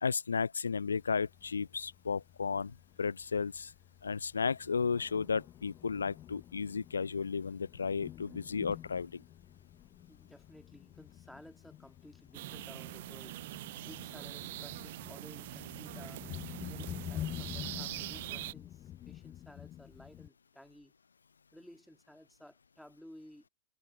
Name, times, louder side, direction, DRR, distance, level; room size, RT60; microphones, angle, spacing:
voice 1, 0.0-3.7 4.0-9.2, left 5 dB, 75° left, 0.5 m, -34 dB
Thunder, 0.9-20.3, left 12 dB, 30° left, 0.8 m, -48 dB
voice 2, 10.1-13.4 13.8-16.3 16.7-20.9 21.5-23.5, equal, ahead, 2.9 m, -55 dB
sound 1, 12.3-18.5, right 17 dB, 55° right, 0.4 m, -43 dB
figure-of-eight pair, 90°, 0 cm